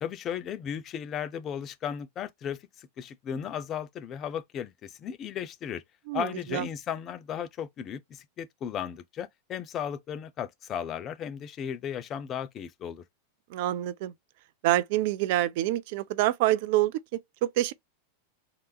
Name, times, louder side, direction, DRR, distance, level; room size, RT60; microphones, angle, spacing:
voice 1, 0.0-5.8 6.1-13.0, left 8 dB, 30° left, 0.4 m, -35 dB
voice 2, 6.1-6.6 13.5-14.1 14.6-16.9 17.4-17.7, right 15 dB, 50° right, 0.3 m, -26 dB
3.3 x 2.9 x 2.3 m
figure-of-eight pair, 90°, 0 cm